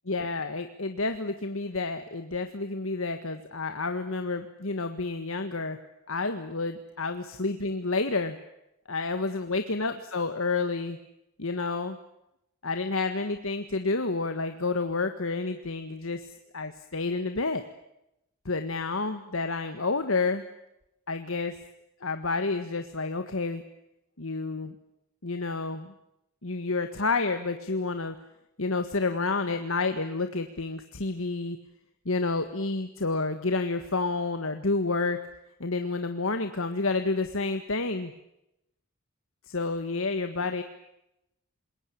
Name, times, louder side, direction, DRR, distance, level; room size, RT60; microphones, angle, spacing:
voice 1, 0.1-5.8 6.1-8.4 8.9-11.0 11.4-12.0 12.6-16.3 16.5-17.6 18.4-20.4 21.1-21.5 22.0-23.6 24.2-24.7 25.2-25.9 26.4-28.1 28.6-31.6 32.0-35.2 35.6-38.1 39.5-40.6, left 3 dB, 70° left, 8 dB, 1.6 m, -29 dB
27.0 x 22.0 x 8.5 m, 0.85 s
head